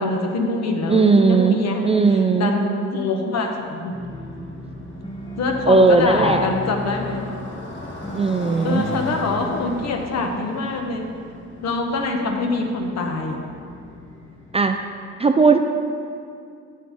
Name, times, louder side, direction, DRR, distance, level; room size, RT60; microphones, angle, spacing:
voice 1, 0.0-4.0 5.4-7.3 8.6-11.1 11.6-13.4, left 3 dB, 60° left, 2 dB, 1.1 m, -24 dB
voice 2, 0.9-2.5 5.7-6.5 8.1-8.8 14.5-14.8 15.2-15.6, right 4 dB, 20° right, 6 dB, 0.3 m, -17 dB
Motorcycle, 3.3-14.7, left 1 dB, 40° left, 1.6 m, -39 dB
sound 1, 3.9-10.8, left 1 dB, 15° left, 0.7 m, -36 dB
7.6 x 7.4 x 3.6 m, 2.4 s
cardioid pair, 90°, 30 cm